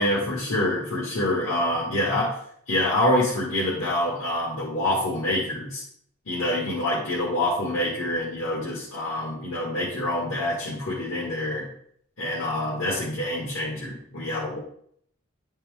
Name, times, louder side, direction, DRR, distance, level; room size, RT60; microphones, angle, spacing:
voice 1, 0.0-2.4 2.7-5.8 6.3-11.7 12.2-14.6, left 1 dB, 85° left, -6 dB, 1.9 m, -26 dB
9.8 x 4.4 x 3.6 m, 0.66 s
head